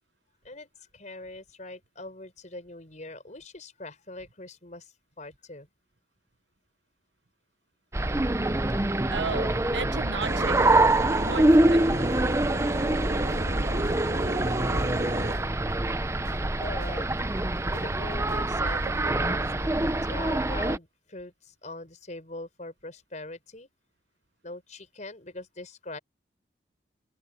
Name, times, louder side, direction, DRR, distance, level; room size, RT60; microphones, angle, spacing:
voice 1, 0.4-5.7 16.5-23.7 24.4-26.0, left 2 dB, 45° left, 5.8 m, -42 dB
sound 1, 7.9-20.8, right 2 dB, 15° right, 0.7 m, -25 dB
voice 2, 8.8-10.9 11.2-11.9, right 4 dB, 85° right, 1.4 m, -34 dB
sound 2, 10.2-15.3, right 1 dB, 40° right, 2.4 m, -33 dB
sound 3, 12.7-12.8 13.3-14.3 14.8-15.9 16.2-18.8, equal, 60° right, 4.5 m, -46 dB
open air
head